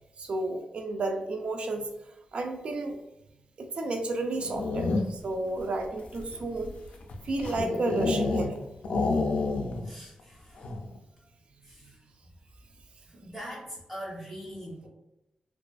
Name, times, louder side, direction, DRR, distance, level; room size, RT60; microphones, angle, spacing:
voice 1, 0.2-1.9 2.3-3.0 3.6-6.8 7.2-8.6, right 2 dB, 50° right, 4 dB, 0.3 m, -32 dB
sound 1, 4.3-5.3 6.0-8.6 8.8-9.9 10.2-10.3 10.6-11.0, left 3 dB, 75° left, 0.3 m, -29 dB
voice 2, 9.8-10.8 11.2-11.3 11.6-12.4 13.0-14.9, equal, 10° right, -5 dB, 0.9 m, -43 dB
2.4 x 2.3 x 2.2 m, 0.88 s
wide cardioid pair, 125°, 2 cm